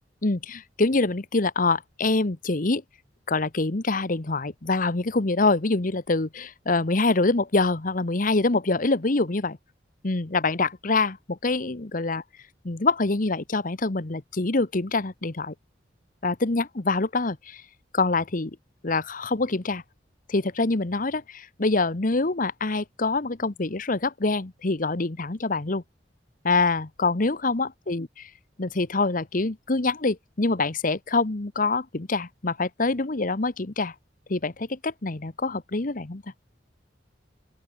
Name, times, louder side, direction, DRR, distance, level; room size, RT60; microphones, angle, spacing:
voice 1, 0.2-2.8 3.3-9.6 10.0-12.2 12.6-15.5 16.2-17.6 17.9-18.6 18.8-19.8 20.3-25.8 26.4-28.3 28.6-33.9 34.3-36.2, left 3 dB, 50° left, 1.2 m, -25 dB
open air
head